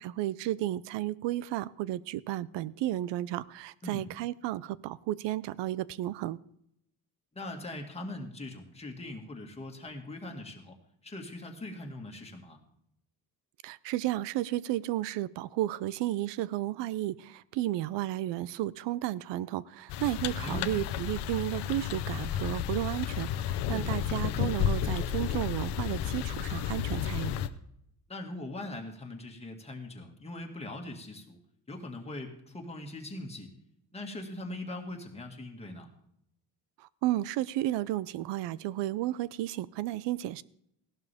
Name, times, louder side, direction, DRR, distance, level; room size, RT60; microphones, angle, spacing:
voice 1, 0.0-6.4 13.6-27.3 36.8-40.4, right 14 dB, 85° right, 20 dB, 0.6 m, -33 dB
voice 2, 7.3-10.8 11.0-12.6 20.4-20.9 23.7-24.0 28.1-31.4 31.7-33.5 33.9-35.9, left 1 dB, 15° left, 2 dB, 2.0 m, -41 dB
sound 1, 19.9-27.5, left 10 dB, 75° left, 0.8 m, -32 dB
16.0 x 12.0 x 3.5 m, 0.76 s
cardioid pair, 135°, 41 cm